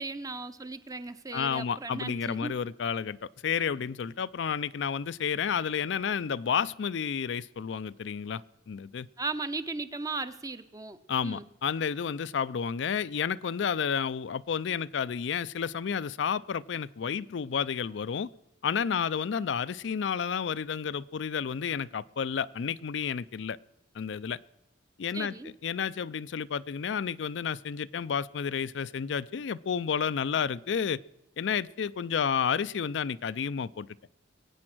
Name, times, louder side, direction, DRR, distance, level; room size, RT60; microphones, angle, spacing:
voice 1, 0.0-2.5 9.2-11.5 25.1-25.5, right 3 dB, 20° right, 12 dB, 0.7 m, -37 dB
voice 2, 1.3-3.2 3.4-8.4 8.7-9.1 11.1-18.3 18.6-23.6 23.9-24.4 25.0-31.0 31.4-33.9, left 7 dB, 70° left, 16 dB, 0.4 m, -31 dB
22.0 x 8.7 x 6.1 m, 0.94 s
head